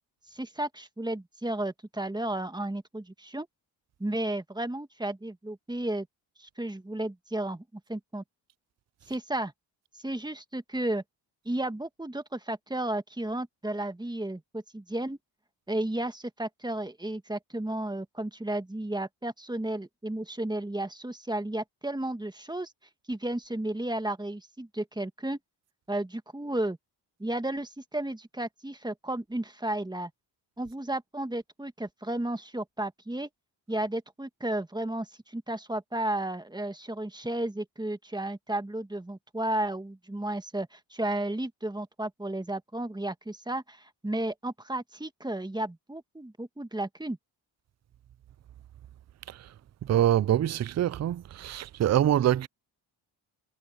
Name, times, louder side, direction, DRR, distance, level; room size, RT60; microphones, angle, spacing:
voice 1, 0.3-3.5 4.0-6.1 6.4-7.6 7.9-8.2 9.1-9.5 10.0-11.0 11.4-15.2 15.7-22.7 23.1-25.4 25.9-26.8 27.2-30.1 30.6-33.3 33.7-47.2, right 1 dB, 10° right, 1.6 m, -33 dB
voice 2, 49.8-52.5, right 11 dB, 35° right, 0.5 m, -25 dB
cardioid pair, 70°, 47 cm